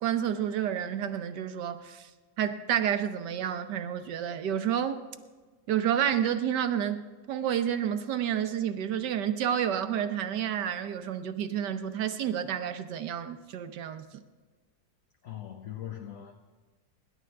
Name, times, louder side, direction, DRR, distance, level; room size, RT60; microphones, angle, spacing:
voice 1, 0.0-2.1 2.4-5.0 5.7-14.2, right 9 dB, 70° right, 1.4 m, -30 dB
voice 2, 15.2-16.3, left 11 dB, 55° left, 1.1 m, -40 dB
25.5 x 11.0 x 3.3 m
omnidirectional pair, 2.0 m